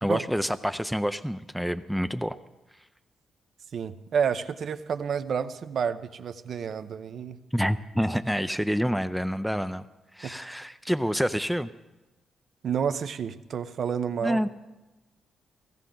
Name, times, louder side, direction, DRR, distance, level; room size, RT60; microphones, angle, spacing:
voice 1, 0.0-2.4 7.5-9.8 10.1-11.7 14.2-14.5, equal, ahead, 11 dB, 0.5 m, -27 dB
voice 2, 3.7-7.4 10.2-10.3 12.6-14.4, right 7 dB, 60° right, 11 dB, 0.8 m, -30 dB
16.5 x 16.0 x 3.9 m, 1.1 s
cardioid pair, 100°, 0 cm